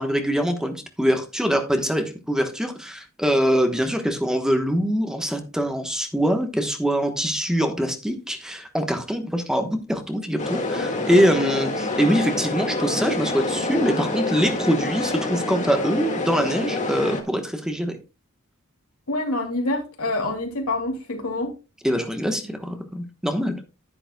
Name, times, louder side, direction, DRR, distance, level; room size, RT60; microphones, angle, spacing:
voice 1, 0.0-18.0 21.8-23.5, equal, 5° right, 1.1 m, -23 dB
sound 1, 10.4-17.2, left 2 dB, 35° left, 1.8 m, -27 dB
voice 2, 19.1-21.5, left 2 dB, 75° left, 2.8 m, -26 dB
11.0 x 10.5 x 2.2 m
head